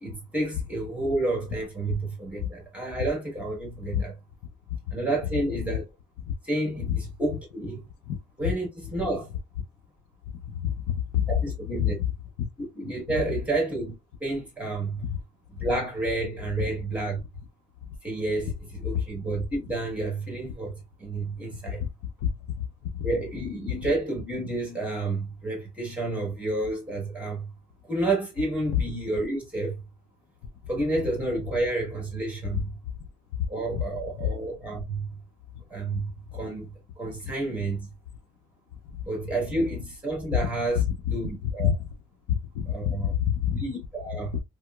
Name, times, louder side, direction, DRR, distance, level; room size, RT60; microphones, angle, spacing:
voice 1, 0.0-4.2 4.9-5.9 6.4-7.8 8.4-9.3 11.3-12.0 12.6-13.9 14.2-15.1 15.5-17.2 18.0-21.8 23.0-27.5 27.9-29.8 30.7-32.7 33.5-35.1 35.7-37.9 39.0-41.8 42.7-43.1 43.5-44.4, right 2 dB, 5° right, 1.3 m, -30 dB
voice 2, 10.6-11.3 11.8-11.9 18.9-19.0 22.9-23.1 41.6-41.7 42.3-43.6 44.3-44.4, left 10 dB, 85° left, 0.6 m, -26 dB
4.6 x 2.1 x 2.3 m
cardioid pair, 170°, 29 cm